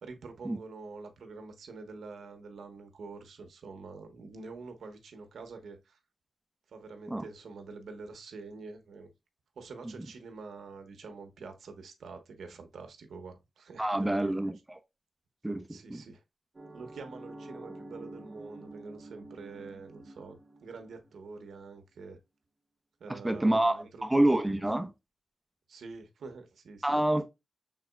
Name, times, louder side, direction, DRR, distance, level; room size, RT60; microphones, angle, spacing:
voice 1, 0.0-6.0 6.7-9.1 9.5-14.4 15.5-16.2 16.7-22.2 23.0-24.4 25.7-27.0, right 4 dB, 85° right, 1.1 m, -46 dB
voice 2, 13.8-14.6 15.4-16.0 23.1-24.9 26.8-27.2, right 1 dB, 15° right, 1.0 m, -27 dB
sound 1, 16.5-21.4, right 2 dB, 40° right, 1.1 m, -48 dB
5.9 x 4.0 x 2.3 m
cardioid pair, 55°, 0 cm